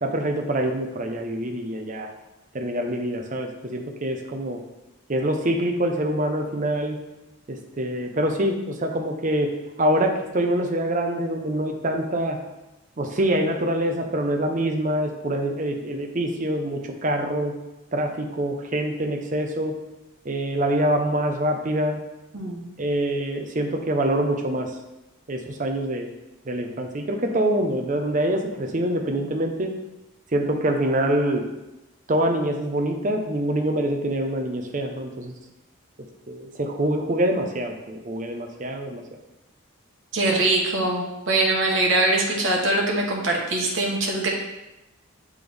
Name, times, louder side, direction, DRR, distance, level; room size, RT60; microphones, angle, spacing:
voice 1, 0.0-2.1 2.5-4.6 5.1-7.0 7.5-9.5 9.8-12.4 13.0-17.5 17.9-19.8 20.2-22.0 22.8-24.7 25.3-26.1 26.5-29.7 30.3-31.4 32.1-35.3 36.3-39.0, right 1 dB, 35° right, 3 dB, 0.6 m, -25 dB
voice 2, 22.3-22.7 40.1-44.3, right 2 dB, 60° right, -1 dB, 1.2 m, -22 dB
7.8 x 3.5 x 3.4 m, 0.98 s
head